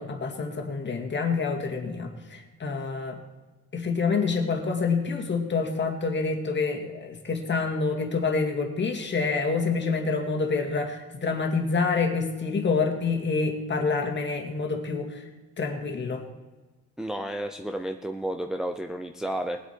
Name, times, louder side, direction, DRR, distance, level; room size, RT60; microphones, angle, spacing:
voice 1, 0.0-3.2 3.7-15.2 15.6-16.2, left 4 dB, 35° left, 2 dB, 2.2 m, -27 dB
voice 2, 17.0-19.6, right 1 dB, ahead, 4 dB, 0.6 m, -31 dB
20.5 x 8.2 x 4.6 m, 1.2 s
cardioid pair, 120°, 32 cm